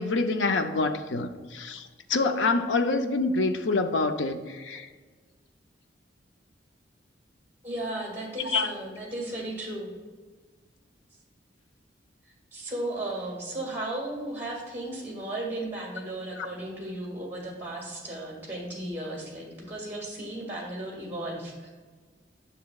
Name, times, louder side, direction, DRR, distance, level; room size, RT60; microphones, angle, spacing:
voice 1, 0.0-4.9 8.5-8.7 16.4-16.5, left 3 dB, 90° left, 7 dB, 0.5 m, -26 dB
voice 2, 7.6-9.9 12.5-21.7, right 1 dB, 10° right, -3 dB, 1.8 m, -35 dB
9.3 x 6.7 x 2.4 m, 1.4 s
head